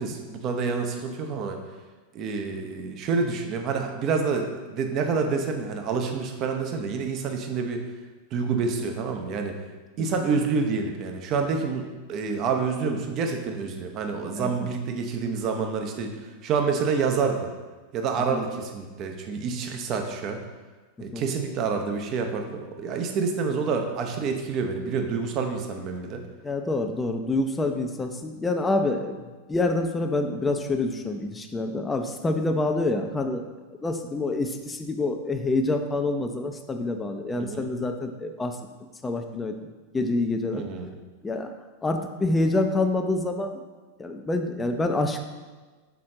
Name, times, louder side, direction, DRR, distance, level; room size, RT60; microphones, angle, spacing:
voice 1, 0.0-1.6 2.1-7.8 8.3-9.5 10.0-17.5 17.9-20.4 21.0-26.2 37.4-37.7 40.5-41.0, right 5 dB, 35° right, 4 dB, 0.8 m, -28 dB
voice 2, 14.4-14.7 18.3-18.4 21.1-21.2 26.4-33.4 33.8-38.6 39.0-39.5 39.9-40.6 41.2-41.5 41.8-43.6 44.0-45.2, left 2 dB, 15° left, 5 dB, 0.5 m, -27 dB
6.0 x 4.2 x 3.7 m, 1.3 s
figure-of-eight pair, 90°, 0 cm